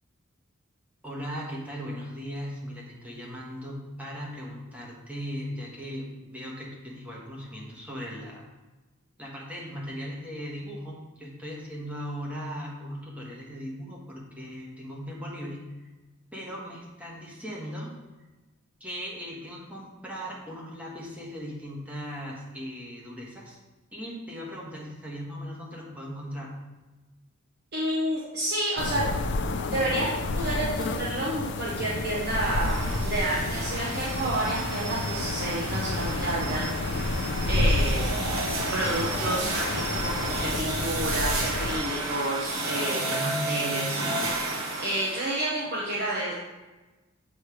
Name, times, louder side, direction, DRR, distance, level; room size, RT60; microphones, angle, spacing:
voice 1, 1.0-8.5 9.2-15.9 16.3-17.9 18.8-23.6 23.9-26.5 43.0-43.9, equal, 5° right, -4 dB, 1.2 m, -38 dB
voice 2, 27.7-29.0 29.6-36.7 37.5-38.1 38.7-44.0 44.8-46.4, right 1 dB, 55° right, -5 dB, 0.9 m, -30 dB
sound 1, 28.8-41.8, left 2 dB, 60° left, 0.5 m, -30 dB
sound 2, 32.2-45.4, right 2 dB, 80° right, 0.9 m, -32 dB
7.5 x 3.2 x 4.8 m, 1.2 s
head